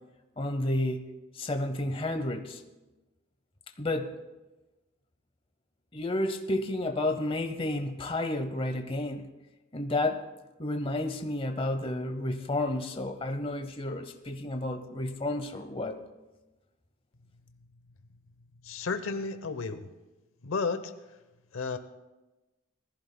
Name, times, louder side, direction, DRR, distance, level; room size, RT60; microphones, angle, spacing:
voice 1, 0.4-1.1 1.3-2.6 3.8-4.1 5.9-9.3 9.7-10.2 10.6-16.0, left 1 dB, 25° left, 6 dB, 0.8 m, -31 dB
voice 2, 18.6-19.9 20.4-20.9 21.5-21.8, left 4 dB, 85° left, 10 dB, 0.8 m, -32 dB
20.0 x 14.5 x 2.2 m, 1.1 s
head